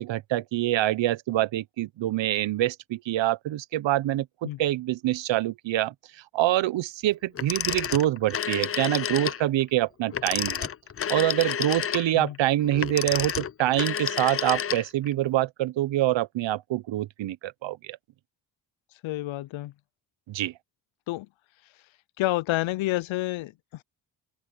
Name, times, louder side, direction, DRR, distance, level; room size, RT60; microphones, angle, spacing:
voice 1, 0.0-4.3 4.6-10.7 11.1-18.0 20.3-20.5, right 14 dB, 70° right, 0.8 m, -26 dB
Telephone, 7.4-9.4 10.1-15.1, left 8 dB, 30° left, 0.5 m, -30 dB
voice 2, 19.0-19.7 21.1-21.3 22.2-23.8, left 17 dB, 85° left, 0.6 m, -29 dB
wide cardioid pair, 145°, 46 cm